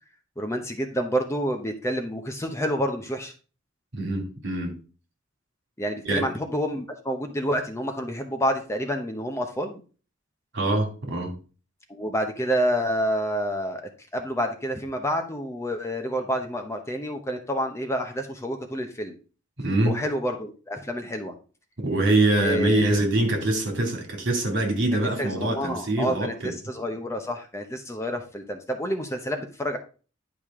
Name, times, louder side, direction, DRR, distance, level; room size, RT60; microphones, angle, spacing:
voice 1, 0.4-3.3 5.8-9.8 11.9-13.8 14.1-19.2 19.9-21.3 22.4-23.0 24.9-29.8, equal, 15° left, 0.8 m, -28 dB
voice 2, 3.9-4.7 6.0-6.3 10.5-11.3 19.6-20.0 21.8-26.5, right 2 dB, 60° right, 2.5 m, -24 dB
10.5 x 5.0 x 3.6 m
head